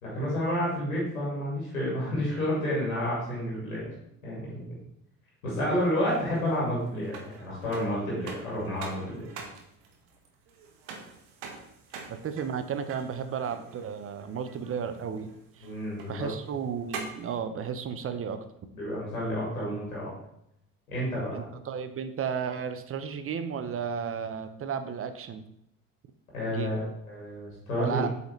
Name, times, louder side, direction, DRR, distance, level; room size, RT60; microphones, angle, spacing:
voice 1, 0.0-3.9 4.2-4.6 5.4-9.2 15.6-16.3 18.7-20.1 20.9-21.4 26.3-28.0, equal, 85° left, -6 dB, 2.1 m, -30 dB
sound 1, 5.8-17.4, right 5 dB, 65° right, 1.2 m, -46 dB
voice 2, 12.1-15.3 15.6-15.7 16.1-18.4 21.3-25.4 26.5-26.8 27.8-28.1, right 7 dB, 35° right, 10 dB, 0.7 m, -33 dB
7.9 x 4.2 x 3.2 m, 0.77 s
figure-of-eight pair, 50°, 41 cm